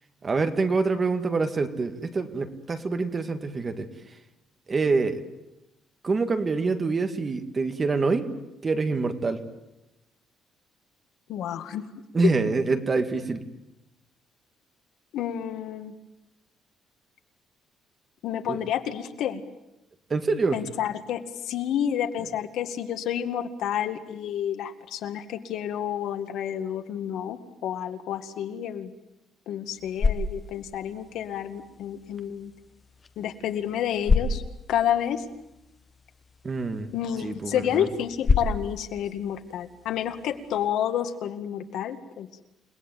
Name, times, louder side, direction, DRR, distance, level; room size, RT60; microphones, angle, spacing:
voice 1, 0.2-3.9 4.7-5.2 6.0-8.3 8.6-9.4 12.1-13.4 18.5-18.6 20.1-20.6 36.4-36.9 37.2-37.9, right 4 dB, 25° right, 7 dB, 1.9 m, -26 dB
voice 2, 11.3-11.9 15.1-15.9 18.2-19.4 20.5-28.9 29.5-32.5 33.2-34.4 34.7-35.2 36.9-42.3, left 10 dB, 70° left, 8 dB, 2.1 m, -30 dB
sound 1, 29.6-40.7, left 4 dB, 25° left, 1.4 m, -31 dB
29.5 x 19.5 x 9.3 m, 0.93 s
cardioid pair, 170°, 0 cm